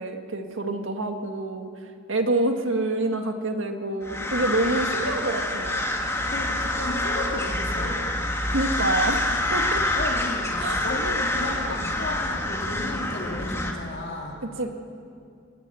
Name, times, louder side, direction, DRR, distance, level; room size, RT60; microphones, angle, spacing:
voice 1, 0.0-1.7 2.1-5.8 8.5-9.3 9.5-9.8 10.6-10.8 14.6-14.7, right 2 dB, 75° right, 5 dB, 1.7 m, -27 dB
sound 1, 4.0-13.7, left 1 dB, 15° left, 1.7 m, -27 dB
voice 2, 6.3-8.0 9.9-14.4, left 1 dB, 60° left, 1 dB, 2.5 m, -34 dB
22.5 x 17.0 x 7.0 m, 2.4 s
head